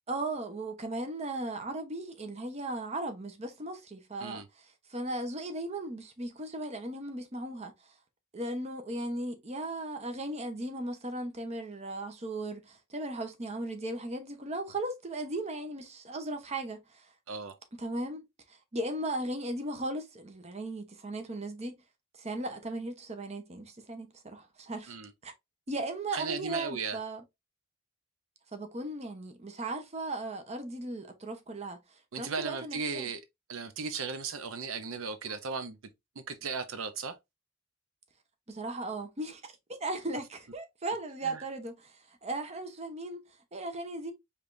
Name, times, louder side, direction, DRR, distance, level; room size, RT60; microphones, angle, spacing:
voice 1, 0.1-4.4 4.9-7.7 8.3-17.1 17.8-21.7 22.2-25.0 25.2-25.3 25.7-27.2 28.5-31.8 32.2-33.1 38.5-39.4 39.7-42.0 42.2-43.2 43.5-44.1, right 2 dB, 30° right, 0.9 m, -37 dB
voice 2, 26.1-27.0 32.1-33.2 33.5-35.8 36.2-37.2 41.2-41.4, right 5 dB, 85° right, 0.7 m, -36 dB
5.0 x 3.3 x 2.6 m
head